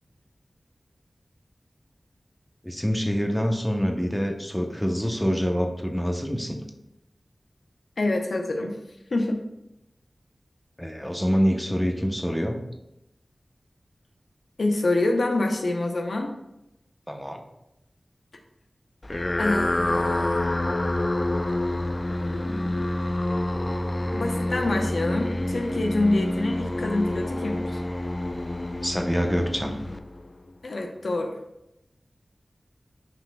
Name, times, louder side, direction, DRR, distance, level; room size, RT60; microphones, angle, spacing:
voice 1, 2.6-6.6 10.8-12.6 17.1-17.4 28.8-29.7, equal, 5° left, 3 dB, 0.8 m, -26 dB
voice 2, 8.0-8.8 9.1-9.4 14.6-16.3 19.4-20.5 22.1-22.8 24.1-27.8 30.6-31.4, left 2 dB, 80° left, 3 dB, 0.8 m, -26 dB
sound 1, 19.0-30.5, left 1 dB, 35° left, 0.3 m, -27 dB
9.4 x 5.3 x 2.3 m, 0.86 s
wide cardioid pair, 65°, 0 cm